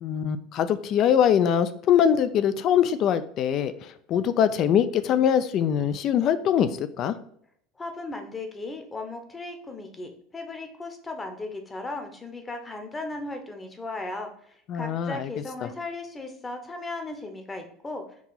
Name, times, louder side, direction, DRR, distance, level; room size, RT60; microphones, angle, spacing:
voice 1, 0.0-7.2 14.7-15.3, left 9 dB, 50° left, 13 dB, 0.4 m, -23 dB
voice 2, 7.8-18.0, left 2 dB, 15° left, 5 dB, 0.8 m, -36 dB
4.7 x 2.8 x 3.9 m, 0.66 s
supercardioid pair, 120°, 0 cm